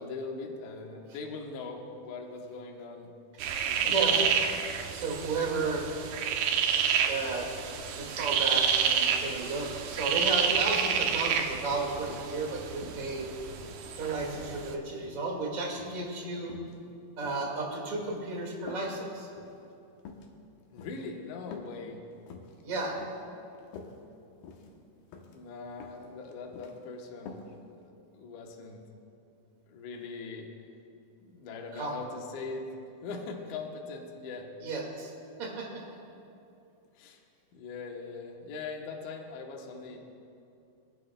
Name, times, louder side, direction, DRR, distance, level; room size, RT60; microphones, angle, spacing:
voice 1, 0.0-3.1 3.7-4.3 20.7-22.0 25.2-28.8 29.7-30.5 31.2-32.7 33.0-34.5 36.9-37.2 37.5-40.0, left 4 dB, 70° left, 1 dB, 2.1 m, -41 dB
sound 1, 3.4-14.7, right 7 dB, 80° right, 2.5 m, -29 dB
voice 2, 3.9-4.3 4.9-5.9 7.0-7.5 8.0-13.3 14.0-16.5 17.2-19.3 22.6-23.0 31.7-31.9 34.6-35.1 35.4-35.8, right 3 dB, 35° right, -2 dB, 1.5 m, -33 dB
sound 2, 10.5-10.8 11.3-12.3 12.8-13.9 14.3-15.3 15.7-16.1 16.4-16.8 17.2-18.2 18.7-18.9 19.3-19.6 20.0-20.3 20.8-21.0 21.5-21.8 22.1-22.6 23.0-23.3 23.6-23.9 24.4-24.8 25.1-25.4 25.8-26.1 26.3-26.8 27.3-27.5 27.8-27.9, left 5 dB, 85° left, 2.9 m, -47 dB
25.5 x 10.5 x 2.2 m, 2.6 s
omnidirectional pair, 4.4 m